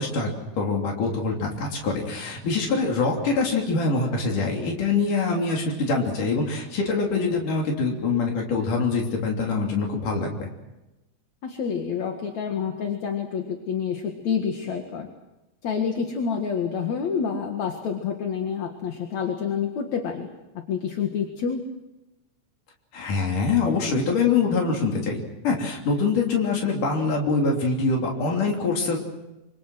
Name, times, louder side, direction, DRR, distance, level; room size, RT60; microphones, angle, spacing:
voice 1, 0.0-10.5 22.9-29.0, left 4 dB, 85° left, 0 dB, 4.7 m, -24 dB
voice 2, 11.4-15.1 15.6-20.3 20.5-21.6, left 6 dB, 65° left, 4 dB, 3.0 m, -28 dB
27.0 x 26.0 x 6.3 m, 1.0 s
omnidirectional pair, 3.6 m